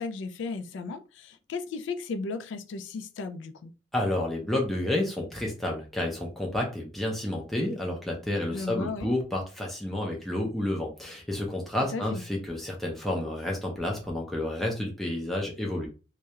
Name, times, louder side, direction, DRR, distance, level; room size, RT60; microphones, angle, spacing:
voice 1, 0.0-3.7 8.5-9.1 11.9-12.2, left 4 dB, 80° left, 0.3 m, -35 dB
voice 2, 3.9-15.9, left 1 dB, ahead, 0.4 m, -30 dB
2.3 x 2.1 x 2.8 m
head